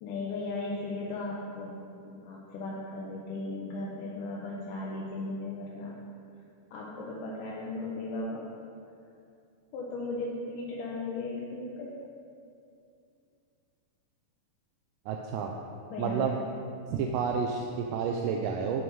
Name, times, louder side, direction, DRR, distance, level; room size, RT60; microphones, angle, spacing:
voice 1, 0.0-6.0 6.7-8.5 9.7-12.0 15.9-16.3 16.9-17.0, left 2 dB, 75° left, -5 dB, 2.3 m, -36 dB
voice 2, 15.1-15.5 16.0-16.4 16.9-18.8, right 6 dB, 85° right, 2 dB, 2.2 m, -30 dB
11.0 x 5.2 x 4.6 m, 2.5 s
omnidirectional pair, 3.9 m